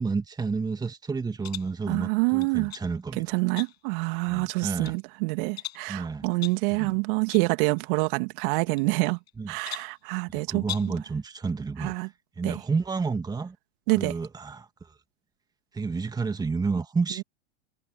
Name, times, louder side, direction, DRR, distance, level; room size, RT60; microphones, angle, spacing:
voice 1, 0.0-3.4 4.3-5.0 5.9-6.2 6.7-7.0 9.4-9.5 10.3-11.9 12.4-13.6 14.0-14.7 15.7-17.2, right 4 dB, 10° right, 2.2 m, -30 dB
sound 1, 1.4-1.8 2.4-2.9 3.6-4.0 4.5-5.0 5.6-5.9 6.4-6.7 7.3-7.5 7.8-7.9 8.8-9.3 9.7-10.0 10.6-11.0, left 14 dB, 70° left, 6.4 m, -39 dB
voice 2, 1.9-2.7 3.1-9.2 9.5-11.0 11.8-12.1 12.4-12.6 13.9-14.1 17.2-17.3, right 30 dB, 50° right, 2.5 m, -27 dB
hypercardioid pair, 110°, 33 cm